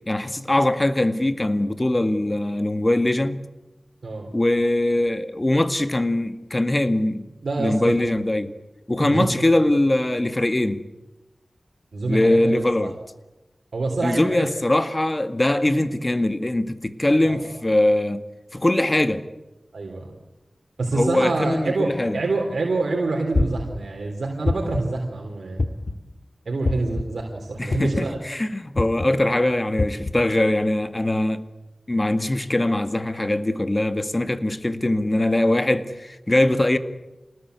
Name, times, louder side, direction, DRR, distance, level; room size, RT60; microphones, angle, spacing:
voice 1, 0.1-3.4 4.3-7.3 7.6-8.5 8.9-10.8 12.1-12.9 14.0-18.2 18.5-19.2 20.9-22.2 27.6-31.4 31.9-36.8, left 1 dB, 30° left, 1.9 m, -22 dB
voice 2, 7.4-8.0 9.0-9.3 11.9-12.9 13.7-14.5 17.2-17.5 19.7-20.1 20.8-25.6 26.5-28.2, right 3 dB, 85° right, 3.5 m, -26 dB
Heart Beats, 23.3-23.8 24.5-24.9 25.6-26.0 26.6-27.0 27.7-28.1 28.8-29.1 29.8-30.1, left 2 dB, 60° left, 2.0 m, -23 dB
27.0 x 19.5 x 8.3 m
cardioid pair, 40°, 0 cm